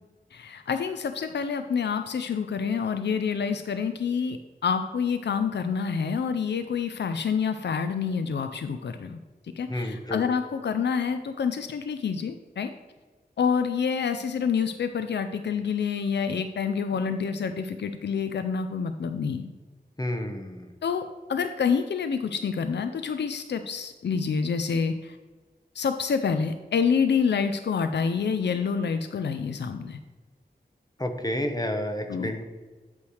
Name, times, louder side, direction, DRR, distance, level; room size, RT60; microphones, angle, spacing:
voice 1, 0.3-9.2 9.6-12.7 13.4-19.5 20.8-21.0 21.3-25.2 25.8-30.0 32.1-32.3, left 6 dB, 85° left, 8 dB, 0.4 m, -27 dB
voice 2, 9.7-10.3 20.0-20.7 31.0-32.5, left 1 dB, 20° left, 5 dB, 0.9 m, -30 dB
8.4 x 3.2 x 6.3 m, 1.4 s
wide cardioid pair, 55°, 17 cm